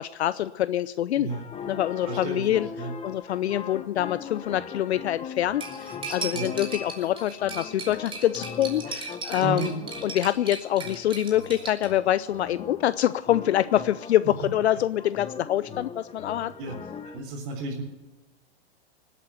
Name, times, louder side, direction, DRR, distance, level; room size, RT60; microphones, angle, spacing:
voice 1, 0.0-1.3 1.7-2.7 3.0-9.7 10.0-16.5, left 12 dB, 80° left, 15 dB, 0.5 m, -25 dB
voice 2, 1.1-1.5 2.0-2.9 6.3-6.5 9.4-9.7 16.6-16.8 17.0-17.8, right 3 dB, 40° right, -4 dB, 4.0 m, -33 dB
sound 1, 1.3-17.2, left 6 dB, 20° left, 1.3 m, -40 dB
Cutlery silverware, 5.6-11.9, right 4 dB, 15° right, 2.9 m, -37 dB
19.5 x 8.4 x 8.1 m, 1.2 s
hypercardioid pair, 120°, 32 cm